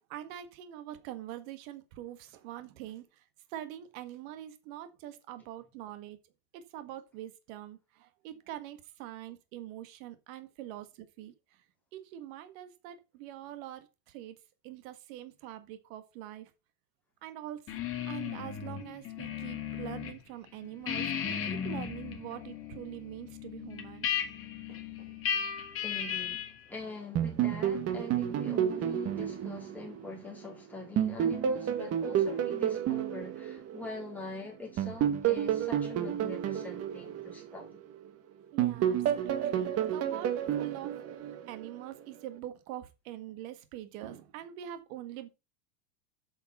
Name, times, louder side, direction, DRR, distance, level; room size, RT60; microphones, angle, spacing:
voice 1, 0.0-3.2 3.5-6.2 6.5-11.6 11.9-14.3 14.6-16.5 17.2-17.7 18.1-24.1 24.7-25.1 38.5-40.9 41.5-45.3, right 12 dB, 60° right, 1.7 m, -44 dB
sound 1, 17.7-20.2 20.5-26.6, left 8 dB, 30° left, 2.2 m, -36 dB
voice 2, 25.8-37.7, left 3 dB, 5° left, 4.1 m, -43 dB
sound 2, 27.2-30.5 31.0-34.2 34.8-38.1 38.6-41.8, right 10 dB, 30° right, 1.3 m, -30 dB
8.6 x 5.8 x 5.5 m
supercardioid pair, 145°, 47 cm